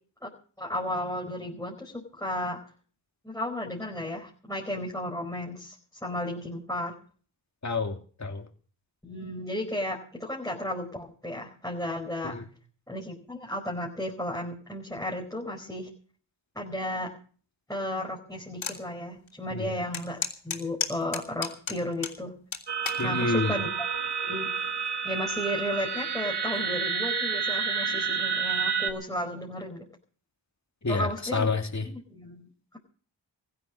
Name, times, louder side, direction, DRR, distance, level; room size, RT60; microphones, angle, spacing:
voice 1, 0.6-2.6 3.2-5.7 6.0-6.9 9.0-12.3 12.9-15.9 16.5-17.1 17.7-20.2 20.4-22.3 23.0-23.7 24.2-24.5 25.0-29.9 30.9-31.5 31.8-32.8, left 1 dB, 5° left, -3 dB, 4.8 m, -34 dB
voice 2, 7.6-8.4 12.2-12.5 19.5-19.7 23.0-23.6 30.8-31.9, left 3 dB, 35° left, 4 dB, 2.9 m, -29 dB
sound 1, 18.6-18.8 19.3-19.4 19.9-22.2 22.5-23.0 23.7-24.1, left 5 dB, 80° left, 3.2 m, -32 dB
sound 2, 22.7-28.9, right 6 dB, 60° right, 2.1 m, -29 dB
15.5 x 12.0 x 6.5 m, 0.43 s
cardioid pair, 55°, 45 cm